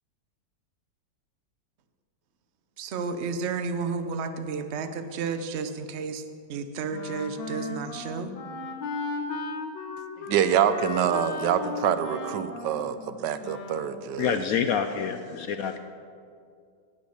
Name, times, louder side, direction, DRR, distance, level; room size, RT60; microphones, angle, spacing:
voice 1, 2.8-6.2 6.5-8.3, right 5 dB, 55° right, 9 dB, 0.7 m, -32 dB
Wind instrument woodwind instrument, 6.9-14.0, left 4 dB, 90° left, 1.7 m, -36 dB
voice 2, 10.3-14.4, right 9 dB, 75° right, 12 dB, 1.3 m, -26 dB
voice 3, 14.2-15.8, left 7 dB, 70° left, 8 dB, 0.8 m, -27 dB
18.0 x 6.3 x 6.5 m, 2.3 s
omnidirectional pair, 2.0 m